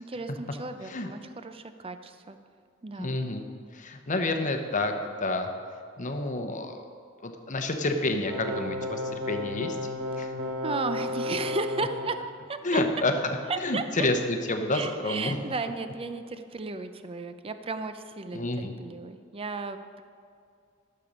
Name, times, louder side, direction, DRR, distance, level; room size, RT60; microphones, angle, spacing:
voice 1, 0.0-2.4 2.8-3.2 10.6-12.2 12.5-12.8 13.5-13.8 14.7-20.0, right 3 dB, 30° right, 9 dB, 0.5 m, -34 dB
voice 2, 3.0-3.5 3.7-4.9 5.2-5.5 6.0-6.8 7.2-9.8 10.2-10.3 12.6-13.4 13.6-15.4 18.3-18.8, left 2 dB, 40° left, 6 dB, 0.9 m, -29 dB
sound 1, 8.3-12.2, left 2 dB, 65° right, 1.3 m, -33 dB
11.5 x 6.8 x 5.3 m, 2.3 s
head